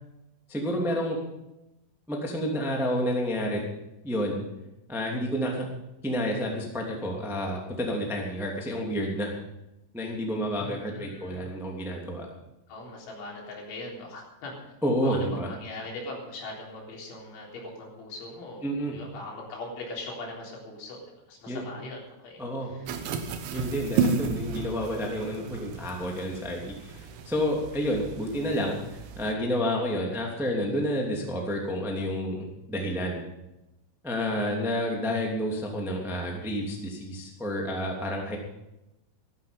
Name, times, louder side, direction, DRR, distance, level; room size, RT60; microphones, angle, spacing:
voice 1, 0.5-1.2 2.1-3.6 4.0-4.4 4.9-5.6 6.0-9.3 9.9-12.3 14.8-15.5 18.6-19.0 21.5-21.6 22.4-22.7 23.5-33.2 34.0-38.4, equal, ahead, -1 dB, 1.1 m, -30 dB
voice 2, 10.6-11.5 12.7-14.6 15.0-18.7 18.9-21.0 21.3-23.0, left 2 dB, 70° left, -2 dB, 6.1 m, -40 dB
sound 1, 22.9-29.3, right 6 dB, 70° right, 3.4 m, -33 dB
14.5 x 14.0 x 5.4 m, 0.92 s
omnidirectional pair, 5.7 m